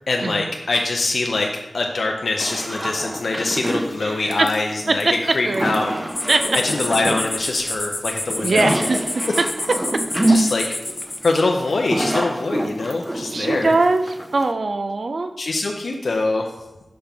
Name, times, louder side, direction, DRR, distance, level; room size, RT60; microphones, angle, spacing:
voice 1, 0.1-1.5 1.7-5.1 5.3-5.9 6.6-8.7 10.3-10.6 11.2-13.7 15.4-16.5, left 3 dB, 80° left, 1 dB, 0.5 m, -23 dB
sound 1, 2.4-14.5, right 1 dB, 20° right, 0.6 m, -26 dB
voice 2, 4.0-4.5 4.9-5.1 5.4-5.7 6.3-6.4 8.4-9.0 10.2-10.8 13.3-15.3 15.9-16.0, right 3 dB, 65° right, 8 dB, 0.3 m, -21 dB
sound 2, 6.1-11.4, left 1 dB, 25° left, 0.5 m, -29 dB
5.8 x 5.1 x 3.4 m, 1.1 s
wide cardioid pair, 70°, 0 cm